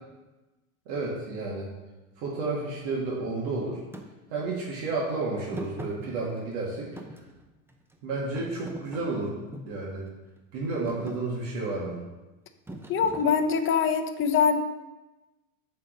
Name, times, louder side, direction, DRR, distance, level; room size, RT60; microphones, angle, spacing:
voice 1, 0.9-1.7 2.2-3.8 4.3-6.9 8.0-9.4 9.7-10.1 10.5-12.0, right 3 dB, 60° right, -4 dB, 2.0 m, -31 dB
Thump thud, 3.9-4.1 5.5-6.6 7.0-8.0 8.4-9.8 10.4-10.6 10.9-11.2 12.7-13.7, right 1 dB, 5° right, 0.6 m, -41 dB
voice 2, 12.9-14.8, left 6 dB, 30° left, 5 dB, 0.8 m, -24 dB
6.2 x 4.2 x 6.5 m, 1.1 s
hypercardioid pair, 105°, 43 cm